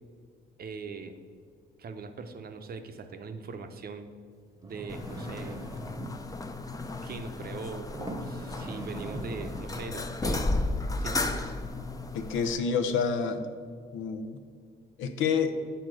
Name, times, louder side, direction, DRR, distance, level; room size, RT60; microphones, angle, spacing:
voice 1, 0.6-1.1 1.8-4.1 4.6-5.6 7.0-10.6 11.0-11.5, right 4 dB, 50° right, 8 dB, 0.7 m, -41 dB
sound 1, 4.6-6.2 7.1-7.3 7.9-9.9 10.6-10.7, right 2 dB, 15° right, 0.9 m, -41 dB
sound 2, 4.9-12.6, left 2 dB, 15° left, 0.5 m, -34 dB
voice 2, 12.1-13.5 13.9-14.4 15.0-15.5, left 6 dB, 80° left, 8 dB, 0.7 m, -28 dB
8.0 x 3.9 x 6.2 m, 2.1 s
cardioid pair, 90°, 20 cm